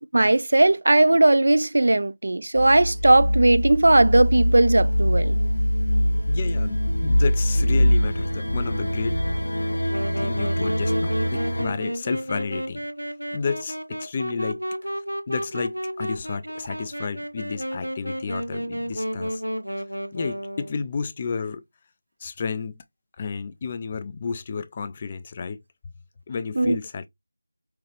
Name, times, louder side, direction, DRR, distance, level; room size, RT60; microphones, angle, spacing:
voice 1, 0.1-5.4 26.6-26.8, right 2 dB, 55° right, 0.4 m, -18 dB
sound 1, 2.5-11.6, equal, 65° left, 0.9 m, -23 dB
voice 2, 6.3-9.2 10.2-12.8 13.3-14.9 15.3-19.4 20.1-21.6 22.2-22.8 23.2-25.6 26.3-27.1, left 5 dB, 20° left, 0.4 m, -31 dB
Wind instrument woodwind instrument, 9.9-20.8, equal, 90° right, 0.8 m, -32 dB
5.7 x 2.4 x 3.2 m
figure-of-eight pair, 170°, 0 cm